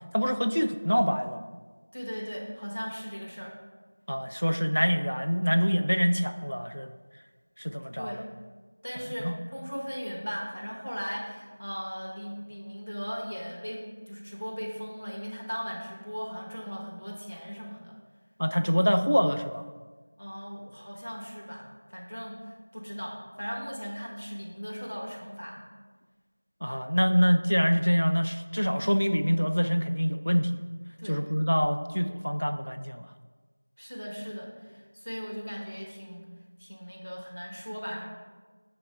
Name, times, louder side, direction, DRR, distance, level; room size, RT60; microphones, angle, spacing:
voice 1, 0.1-1.5 4.1-6.9 7.6-8.2 9.2-9.4 18.4-19.6 26.6-30.5 31.1-33.1, equal, 85° left, 9 dB, 0.5 m, -25 dB
voice 2, 1.9-3.5 8.0-8.3 8.8-18.0 18.6-18.7 20.2-25.6 31.0-31.2 33.8-36.3 36.6-38.1, equal, 35° left, -3 dB, 1.0 m, -38 dB
6.6 x 3.8 x 4.3 m, 1.4 s
figure-of-eight pair, 180°, 0 cm